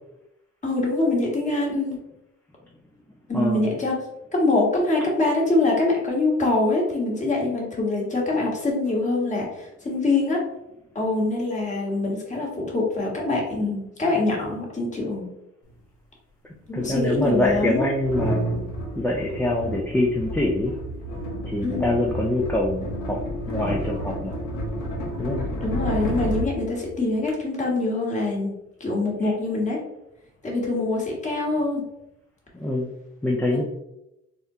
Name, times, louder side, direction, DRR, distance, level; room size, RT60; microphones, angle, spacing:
voice 1, 0.6-2.0 3.3-4.0 4.3-10.4 10.9-15.3 16.7-17.9 21.6-22.1 25.6-28.5 28.8-29.8 30.4-31.8 33.5-33.6, left 2 dB, 25° left, -2 dB, 1.2 m, -24 dB
voice 2, 3.3-3.7 16.7-18.4 19.0-20.7 21.4-23.2 23.5-24.4 25.2-25.5 29.2-29.3 32.5-32.9 33.2-33.6, left 1 dB, 5° left, -2 dB, 0.4 m, -24 dB
sound 1, 15.7-15.8 16.7-27.3, equal, 90° left, 0.9 m, -31 dB
3.6 x 2.1 x 2.7 m, 0.87 s
cardioid pair, 90°, 30 cm